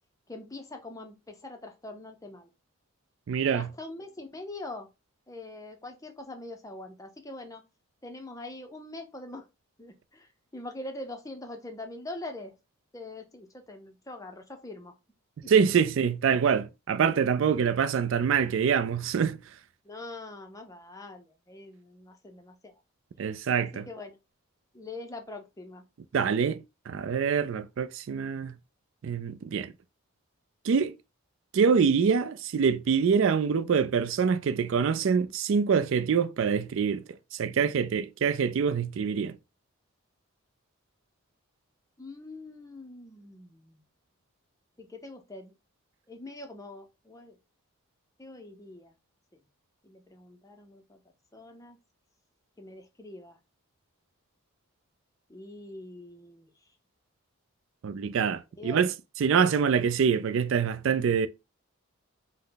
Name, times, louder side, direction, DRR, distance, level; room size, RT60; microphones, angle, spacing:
voice 1, 0.3-2.5 3.4-4.9 5.3-7.6 8.0-9.5 9.8-12.5 12.9-14.9 19.8-22.7 23.6-24.2 24.7-25.8 42.0-43.8 44.8-45.5 46.1-47.4 48.2-48.9 49.8-51.0 51.3-51.8 52.6-53.4 55.3-56.5 58.6-58.8 59.4-59.5, left 2 dB, 15° left, 0.5 m, -43 dB
voice 2, 3.3-3.7 15.5-19.4 23.2-23.9 26.1-28.5 29.0-29.7 30.6-30.9 31.5-39.4 57.8-58.9 59.2-61.3, right 6 dB, 60° right, 0.3 m, -25 dB
5.5 x 2.1 x 3.8 m
head